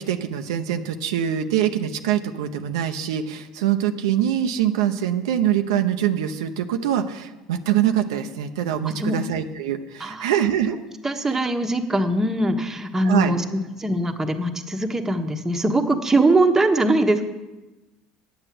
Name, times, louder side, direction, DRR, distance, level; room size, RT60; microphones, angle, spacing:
voice 1, 0.0-10.8 13.0-13.3, right 10 dB, 85° right, 5 dB, 0.7 m, -24 dB
voice 2, 8.8-9.2 10.0-10.3 11.0-17.2, right 2 dB, 15° right, 4 dB, 1.2 m, -22 dB
9.5 x 8.0 x 7.6 m, 1.1 s
supercardioid pair, 85°, 3 cm